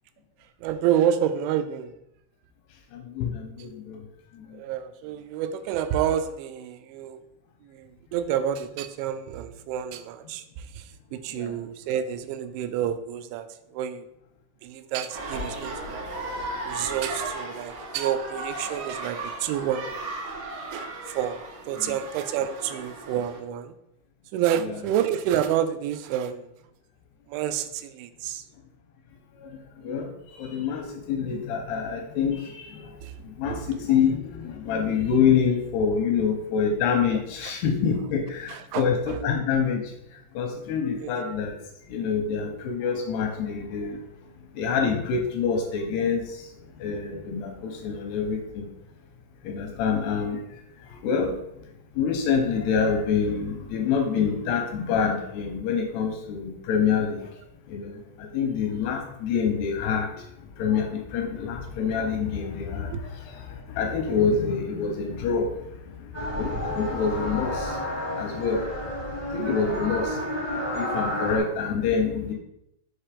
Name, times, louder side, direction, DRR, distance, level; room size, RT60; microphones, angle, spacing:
voice 1, 0.6-1.9 4.5-7.2 7.6-14.1 14.6-16.0 16.7-20.0 20.7-23.7 24.3-26.5 27.3-28.4 33.0-33.1 33.5-33.9 37.4-37.5 38.5-39.2 41.0-41.1 62.9-63.0, right 10 dB, 90° right, 10 dB, 2.9 m, -29 dB
sound 1, 15.1-23.4, right 2 dB, 75° right, 1.9 m, -35 dB
voice 2, 30.4-30.8 31.1-32.4 33.4-34.2 34.7-38.5 38.8-39.0 39.2-39.8 40.4-41.5 41.9-43.9 44.6-46.2 46.8-48.6 49.5-50.4 51.0-51.3 52.0-57.2 57.7-57.9 58.3-60.1 60.6-60.9 61.1-62.9 63.8-65.5 66.3-67.5 68.2-68.6 69.3-70.0 70.8-72.3, left 6 dB, 85° left, 2 dB, 2.5 m, -25 dB
sound 2, 66.1-71.4, left 1 dB, 25° left, 0.5 m, -30 dB
6.7 x 3.0 x 4.8 m, 0.81 s
omnidirectional pair, 5.1 m